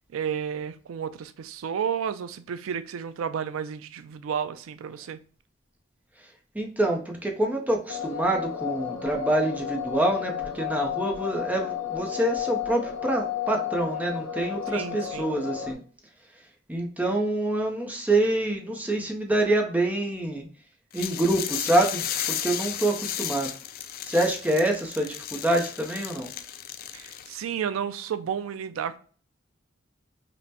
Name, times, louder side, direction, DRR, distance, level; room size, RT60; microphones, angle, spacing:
voice 1, 0.1-5.2 14.7-15.3 26.9-29.0, right 7 dB, 85° right, 0.4 m, -32 dB
voice 2, 6.5-15.8 16.7-20.5 20.9-23.5 24.0-26.3, right 1 dB, 10° right, 0.6 m, -26 dB
sound 1, 7.9-15.7, left 10 dB, 85° left, 0.7 m, -32 dB
sound 2, 20.9-27.4, left 10 dB, 45° left, 0.3 m, -34 dB
5.3 x 2.1 x 2.8 m
head